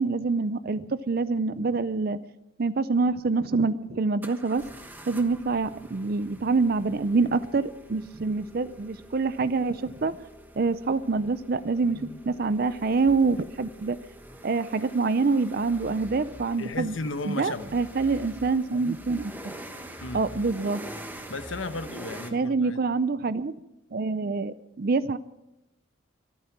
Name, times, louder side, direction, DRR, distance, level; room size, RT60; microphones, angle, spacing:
voice 1, 0.0-2.2 2.6-4.6 5.1-10.2 10.6-14.0 14.4-16.9 17.2-19.5 20.1-20.8 22.3-23.5 23.9-25.2, right 4 dB, 50° right, 0.5 m, -26 dB
sound 1, 4.2-22.3, right 1 dB, 10° right, 1.2 m, -45 dB
voice 2, 11.9-12.2 16.6-17.8 20.0-20.3 21.3-22.8, left 3 dB, 85° left, 1.1 m, -35 dB
24.5 x 9.4 x 6.0 m
head